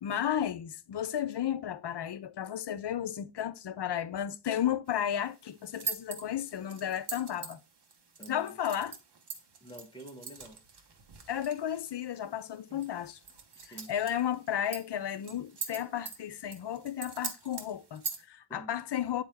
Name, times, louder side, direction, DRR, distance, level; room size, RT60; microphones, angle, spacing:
voice 1, 0.0-7.6 8.3-9.0 11.3-13.2 13.7-19.2, left 10 dB, 60° left, 0.6 m, -33 dB
sound 1, 4.9-18.2, right 6 dB, 60° right, 1.1 m, -44 dB
voice 2, 8.2-8.6 9.6-10.6 12.7-12.9 13.6-13.9 18.5-18.7, right 1 dB, 10° left, 1.1 m, -48 dB
8.9 x 4.3 x 3.4 m
wide cardioid pair, 170°, 46 cm